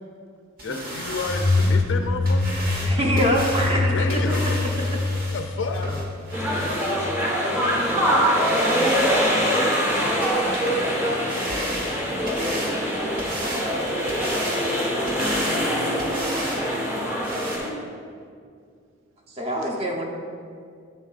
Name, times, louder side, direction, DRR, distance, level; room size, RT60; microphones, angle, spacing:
voice 1, 0.6-2.6 3.6-4.7 5.1-5.9 6.4-6.7, left 3 dB, 60° left, 6 dB, 0.4 m, -32 dB
sound 1, 0.6-7.0 7.5-7.6 7.9-8.0 8.3-9.3 9.5-10.7 11.0-12.7 13.2-13.7 14.1-14.6 15.1-15.7 16.0-16.6 16.9-17.0 17.2-17.6, right 1 dB, 45° right, 1.1 m, -34 dB
sound 2, 1.3-7.8, left 2 dB, 20° left, 0.8 m, -25 dB
voice 2, 2.8-4.5 19.4-20.0, equal, 30° right, 0 dB, 0.7 m, -24 dB
sound 3, 6.3-17.7, equal, 10° right, 1.1 m, -23 dB
voice 3, 13.3-14.4 15.0-16.0, right 2 dB, 75° right, 7 dB, 0.5 m, -39 dB
8.5 x 7.0 x 2.4 m, 2.2 s
head